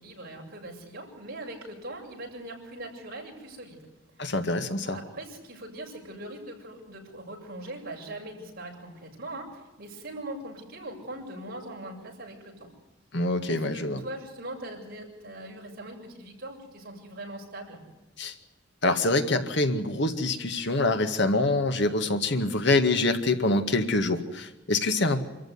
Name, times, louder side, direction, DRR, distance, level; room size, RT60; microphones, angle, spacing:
voice 1, 0.0-3.9 4.2-4.4 4.8-12.7 13.5-17.8, right 1 dB, 50° right, 0 dB, 7.3 m, -41 dB
voice 2, 4.2-5.0 13.1-14.0 18.2-18.3 18.8-25.2, left 2 dB, 60° left, 8 dB, 2.1 m, -25 dB
27.0 x 14.5 x 9.7 m, 1.1 s
head